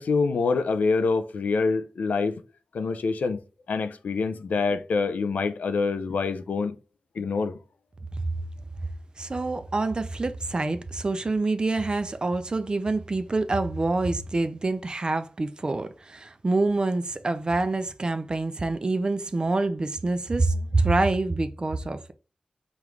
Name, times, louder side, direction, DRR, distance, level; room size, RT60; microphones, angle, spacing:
voice 1, 0.0-2.4 2.7-3.4 3.7-6.8 7.2-7.5, left 4 dB, 90° left, 0.4 m, -26 dB
voice 2, 9.2-22.1, right 2 dB, 35° right, 0.4 m, -26 dB
5.0 x 2.4 x 3.1 m
wide cardioid pair, 100°, 3 cm